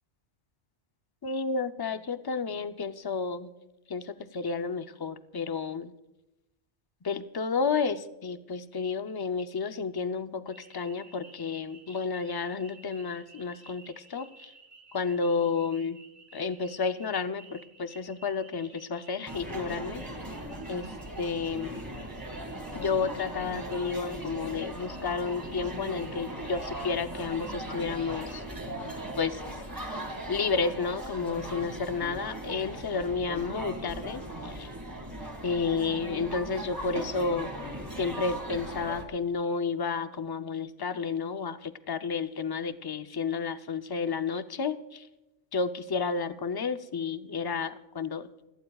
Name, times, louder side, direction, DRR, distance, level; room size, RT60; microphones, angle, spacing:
voice 1, 1.2-3.5 3.9-5.9 7.0-14.5 14.9-16.0 16.3-20.1 20.7-21.8 22.7-28.4 29.2-29.6 30.3-34.7 35.4-37.5 38.0-45.1 45.5-48.3, left 5 dB, 30° left, 9 dB, 0.4 m, -31 dB
sound 1, 10.5-28.6, right 3 dB, 60° right, 1.9 m, -55 dB
sound 2, 19.3-39.0, right 1 dB, 15° right, 2.0 m, -38 dB
28.5 x 17.5 x 2.3 m, 0.98 s
omnidirectional pair, 1.2 m